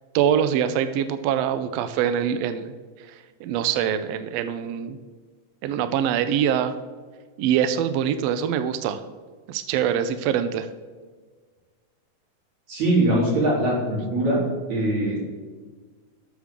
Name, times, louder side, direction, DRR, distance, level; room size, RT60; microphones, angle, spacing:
voice 1, 0.1-2.7 3.1-5.0 5.6-6.7 7.4-9.0 9.5-10.7, right 9 dB, 85° right, 11 dB, 1.5 m, -24 dB
voice 2, 12.7-14.4 14.7-15.2, right 1 dB, 65° right, -5 dB, 4.6 m, -22 dB
12.5 x 7.5 x 3.6 m, 1.5 s
omnidirectional pair, 3.5 m